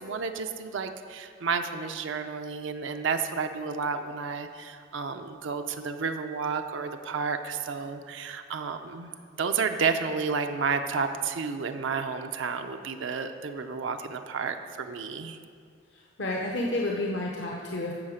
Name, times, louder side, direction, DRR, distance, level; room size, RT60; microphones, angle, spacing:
voice 1, 0.0-9.1 9.4-15.4, right 5 dB, 75° right, 6 dB, 0.5 m, -31 dB
voice 2, 15.9-17.9, left 1 dB, 65° left, -2 dB, 0.8 m, -30 dB
9.8 x 7.1 x 5.0 m, 2.1 s
head